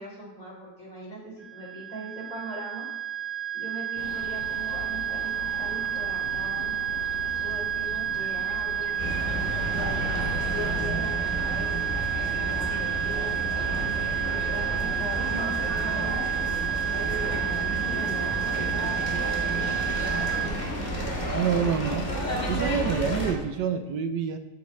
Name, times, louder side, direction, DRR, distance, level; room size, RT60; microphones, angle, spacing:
voice 1, 0.0-2.9 3.5-6.8 7.4-10.0 10.5-11.8 12.2-16.2 16.9-20.9, right 1 dB, 45° left, -5 dB, 3.7 m, -40 dB
sound 1, 1.4-20.5, right 10 dB, 20° right, 0.7 m, -30 dB
sound 2, 4.0-10.9, left 8 dB, 75° left, 1.2 m, -40 dB
sound 3, 9.0-23.3, equal, 25° left, 2.1 m, -31 dB
voice 2, 21.3-22.1 22.5-24.4, right 7 dB, 75° right, 8 dB, 1.2 m, -27 dB
14.0 x 5.0 x 3.1 m, 1.1 s
omnidirectional pair, 1.9 m